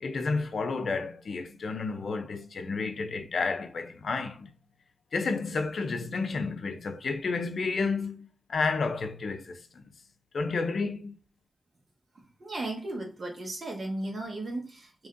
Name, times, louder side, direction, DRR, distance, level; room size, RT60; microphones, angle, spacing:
voice 1, 0.0-4.5 5.1-9.8 10.3-11.2, left 4 dB, 75° left, 0.6 m, -31 dB
voice 2, 12.4-15.1, right 2 dB, 50° right, 1.6 m, -35 dB
5.0 x 3.1 x 2.6 m
wide cardioid pair, 135°, 0 cm